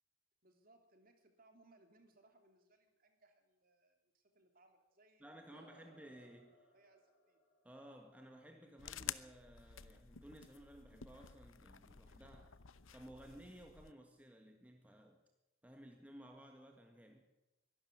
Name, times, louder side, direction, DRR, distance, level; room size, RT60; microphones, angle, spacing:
voice 1, 0.4-5.7 6.2-7.4, right 2 dB, 45° right, 5 dB, 3.3 m, -69 dB
voice 2, 5.2-6.5 7.6-12.6 12.9-15.2 15.6-17.2, right 1 dB, 5° right, 3 dB, 1.7 m, -57 dB
sound 1, 5.5-10.2, right 1 dB, 50° left, 7.1 m, -68 dB
sound 2, 8.8-13.9, left 10 dB, 80° left, 0.9 m, -51 dB
23.5 x 12.5 x 9.5 m, 0.97 s
head